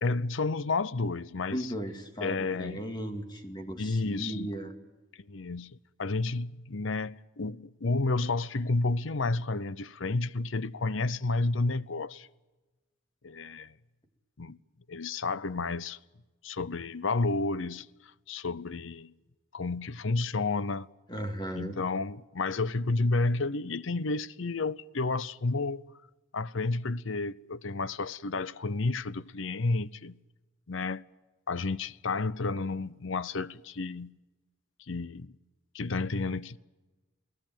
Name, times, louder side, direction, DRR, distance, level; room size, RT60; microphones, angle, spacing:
voice 1, 0.0-1.6 2.2-2.8 3.8-4.5 5.2-5.7 6.0-12.3 13.2-13.7 14.4-14.6 14.9-16.0 16.4-17.9 18.3-19.1 19.5-20.9 21.5-25.8 26.3-30.2 30.7-31.0 31.5-34.1 34.9-35.4 35.7-36.6, left 3 dB, 70° left, 0.7 m, -31 dB
voice 2, 1.5-4.7 21.1-21.8, right 1 dB, 20° left, 2.3 m, -36 dB
28.5 x 18.0 x 9.1 m
head